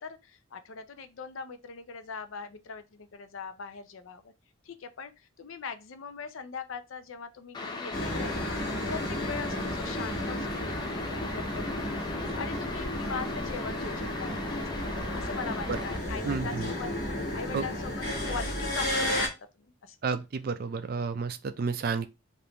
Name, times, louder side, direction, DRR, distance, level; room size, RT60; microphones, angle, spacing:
voice 1, 0.0-4.3 4.7-5.1 5.4-8.5 8.9-14.6 15.1-16.9 17.3-19.3 19.8-20.0, left 5 dB, 75° left, 0.5 m, -41 dB
sound 1, 7.5-16.0, left 3 dB, 20° left, 0.4 m, -38 dB
sound 2, 7.9-19.3, left 1 dB, 45° left, 1.3 m, -33 dB
voice 2, 16.2-16.7 17.5-17.7 20.0-22.1, right 5 dB, 45° right, 0.3 m, -31 dB
3.4 x 2.5 x 2.9 m
head